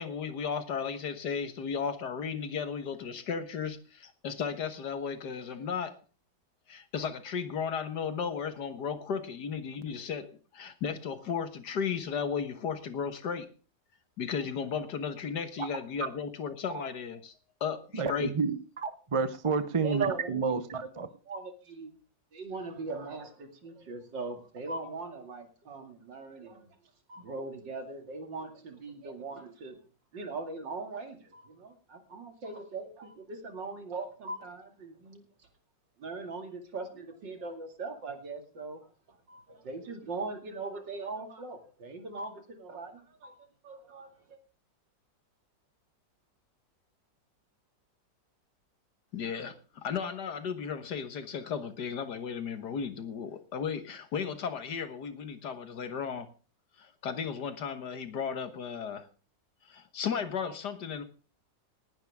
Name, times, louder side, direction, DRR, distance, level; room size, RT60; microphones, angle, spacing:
voice 1, 0.0-5.9 6.7-13.5 14.2-17.3 17.6-18.3 49.1-56.3 56.8-59.1 59.7-61.0, left 6 dB, 65° left, 10 dB, 1.9 m, -35 dB
voice 2, 17.9-21.1, right 4 dB, 35° right, 11 dB, 0.5 m, -30 dB
voice 3, 19.8-20.4 21.3-21.9 22.3-26.7 27.1-29.8 30.1-35.2 36.0-38.8 39.3-44.4, right 3 dB, 75° right, 5 dB, 3.1 m, -40 dB
19.5 x 10.5 x 3.6 m, 0.36 s
omnidirectional pair, 2.0 m